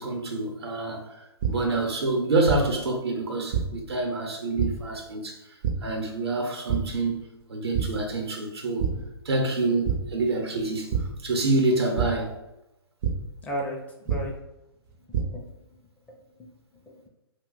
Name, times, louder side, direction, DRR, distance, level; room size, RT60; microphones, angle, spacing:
voice 1, 0.0-5.4 5.8-8.9 9.2-10.9 11.2-12.3, right 2 dB, 80° right, 3 dB, 0.8 m, -27 dB
sound 1, 1.4-1.5 2.5-2.6 3.5-3.6 4.6-4.7 5.6-5.7 6.7-6.8 7.2-7.4 7.7-7.8 8.8-8.9 9.8-10.0 10.9-11.0 12.0-12.1 13.0-13.1 14.1-14.2 14.9-15.2, right 9 dB, 45° right, 0.6 m, -25 dB
voice 2, 13.4-14.3 15.1-15.5 16.4-17.1, equal, 10° left, -1 dB, 0.4 m, -36 dB
2.6 x 2.2 x 3.8 m, 0.94 s
hypercardioid pair, 125°, 13 cm